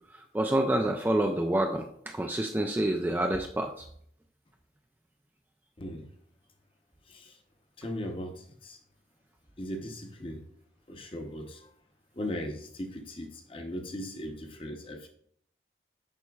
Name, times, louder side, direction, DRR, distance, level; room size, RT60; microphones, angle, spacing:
voice 1, 0.3-3.9, right 1 dB, 10° right, 0.3 m, -28 dB
voice 2, 7.8-8.8 9.6-10.4 10.9-11.6 12.2-15.1, equal, 30° left, 0.8 m, -38 dB
10.5 x 4.3 x 2.3 m
head